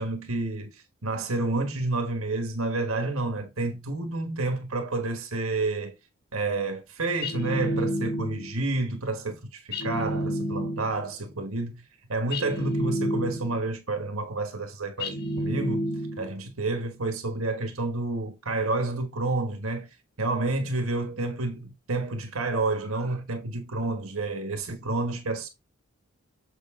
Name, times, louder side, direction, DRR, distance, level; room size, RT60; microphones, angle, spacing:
voice 1, 0.0-5.9 6.3-11.8 12.1-15.9 16.2-25.5, right 2 dB, 75° right, 1.3 m, -29 dB
sound 1, 7.2-8.6 9.7-11.0 12.3-13.7 15.0-16.4, equal, 50° left, 2.1 m, -30 dB
7.8 x 5.3 x 3.6 m
head